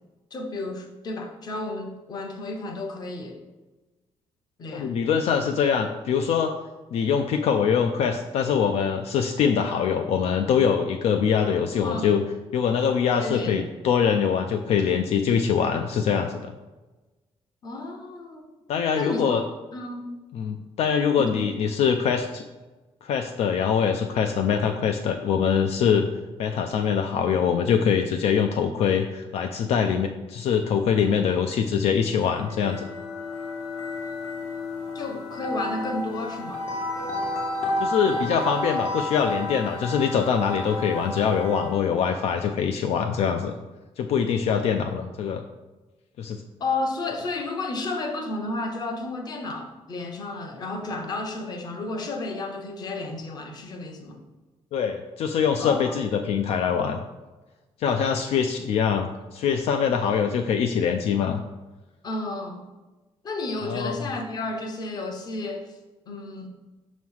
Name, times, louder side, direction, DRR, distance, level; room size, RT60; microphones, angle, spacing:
voice 1, 0.3-3.4 4.6-4.9 11.8-12.1 13.2-13.6 17.6-18.5 18.9-19.4 19.7-20.1 21.2-21.6 34.9-36.6 46.6-54.2 55.6-56.0 62.0-62.6 63.2-65.7 66.1-66.5, left 2 dB, 35° left, 4 dB, 0.8 m, -32 dB
voice 2, 4.7-6.5 6.9-12.2 12.5-16.5 18.7-19.4 20.3-22.4 23.0-26.1 26.4-32.9 37.8-43.5 44.0-45.4 46.2-46.4 54.7-57.0 57.8-61.4 63.6-64.0, left 7 dB, 70° left, 5 dB, 0.4 m, -23 dB
sound 1, 32.4-41.8, left 1 dB, 85° left, 1.4 m, -31 dB
6.1 x 3.1 x 5.6 m, 1.2 s
cardioid pair, 175°, 11 cm